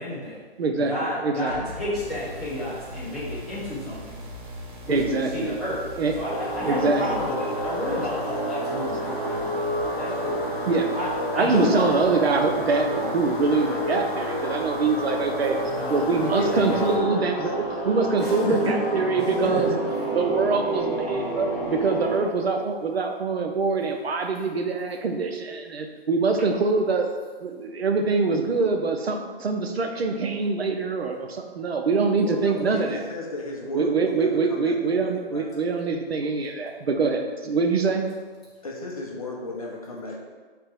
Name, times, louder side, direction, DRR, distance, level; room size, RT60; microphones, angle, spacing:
voice 1, 0.0-0.4 0.9-4.2 4.8-5.8 6.1-9.7 10.0-10.4 10.9-11.1 11.3-12.0 15.7-17.1 18.2-18.7 19.4-19.8, left 1 dB, ahead, -16 dB, 0.9 m, -30 dB
voice 2, 0.6-0.9 1.2-1.5 4.9-5.6 6.0-6.1 6.6-7.2 10.7-10.9 11.3-27.1 27.4-33.0 33.7-38.0, right 4 dB, 75° right, 4 dB, 0.7 m, -24 dB
sound 1, 1.4-13.2, left 2 dB, 25° right, 0.4 m, -43 dB
sound 2, 2.0-17.0, right 3 dB, 50° right, 0.9 m, -43 dB
sound 3, 6.3-22.2, right 1 dB, 15° left, 1.3 m, -29 dB
voice 3, 32.2-35.5 38.6-40.2, left 2 dB, 35° left, -2 dB, 0.5 m, -35 dB
3.5 x 2.9 x 4.5 m, 1.4 s
hypercardioid pair, 160°, 31 cm